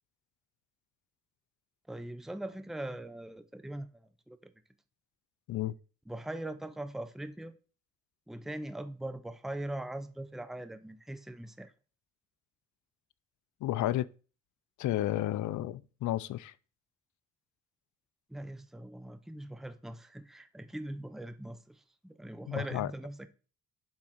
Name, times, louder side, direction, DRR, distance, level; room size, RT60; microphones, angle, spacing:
voice 1, 1.9-4.5 6.1-7.5 8.3-11.7 18.3-23.3, right 1 dB, ahead, 0.7 m, -41 dB
voice 2, 13.6-14.1 14.8-16.5 22.5-22.9, left 14 dB, 75° left, 0.6 m, -32 dB
7.4 x 3.7 x 6.4 m
cardioid pair, 90°, 30 cm